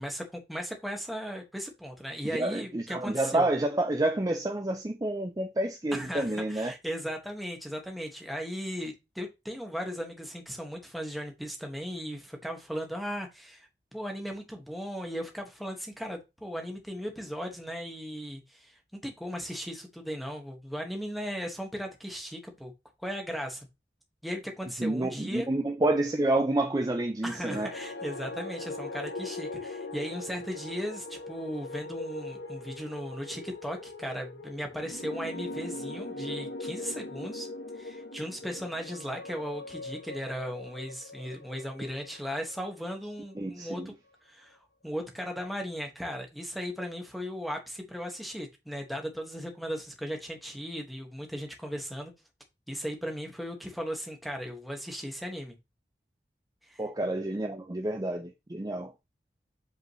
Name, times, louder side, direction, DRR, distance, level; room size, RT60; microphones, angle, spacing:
voice 1, 0.0-3.5 5.9-22.7 23.0-23.7 24.2-25.5 27.2-37.5 37.7-43.9 44.2-44.6 44.8-52.1 52.7-55.6 56.6-56.8, equal, ahead, 1.5 m, -37 dB
voice 2, 2.2-6.7 24.8-27.7 43.4-43.9 56.8-58.9, right 2 dB, 20° right, 0.5 m, -29 dB
sound 1, 27.3-43.6, left 2 dB, 85° left, 1.1 m, -41 dB
8.1 x 5.1 x 3.1 m
head